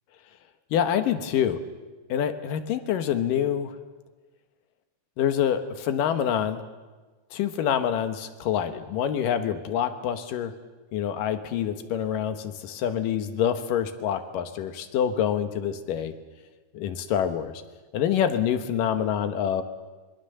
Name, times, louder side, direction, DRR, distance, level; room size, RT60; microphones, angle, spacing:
voice 1, 0.7-1.6 2.1-3.7 5.2-6.6 7.3-10.5 10.9-16.1 16.7-17.6 17.9-19.6, left 9 dB, 85° left, 9 dB, 2.9 m, -26 dB
25.5 x 22.0 x 6.8 m, 1.3 s
omnidirectional pair, 3.7 m